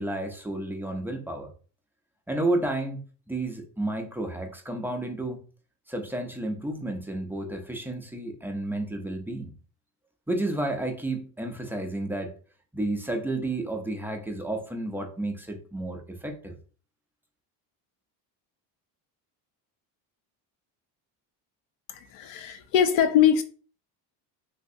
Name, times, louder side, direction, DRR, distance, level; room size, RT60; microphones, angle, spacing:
voice 1, 0.0-1.5 2.3-5.4 5.9-9.5 10.3-12.3 12.7-16.5, right 2 dB, 5° right, 0.4 m, -31 dB
voice 2, 21.9-23.4, left 9 dB, 80° left, 0.7 m, -22 dB
3.4 x 2.9 x 2.6 m
cardioid pair, 120°, 45 cm